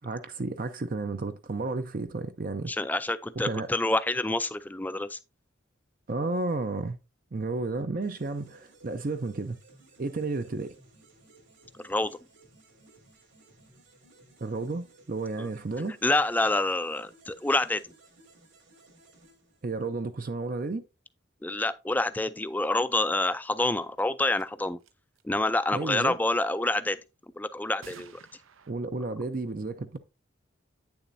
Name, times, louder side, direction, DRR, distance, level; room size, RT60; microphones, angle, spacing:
voice 1, 0.0-2.7 3.4-3.7 6.1-7.0 7.3-9.6 10.0-10.7 14.4-16.0 19.6-20.8 25.7-26.2 28.7-30.0, right 3 dB, 45° right, 0.5 m, -32 dB
voice 2, 2.7-5.2 11.8-12.2 15.4-15.5 16.0-17.8 21.4-24.8 25.2-27.0 27.4-28.1, left 2 dB, 10° left, 0.3 m, -27 dB
sound 1, 8.0-20.1, right 2 dB, 65° right, 3.3 m, -58 dB
sound 2, 24.0-24.1 24.4-24.5 24.8-25.2 27.8-28.7, right 6 dB, 85° right, 0.7 m, -51 dB
9.1 x 7.0 x 2.6 m
head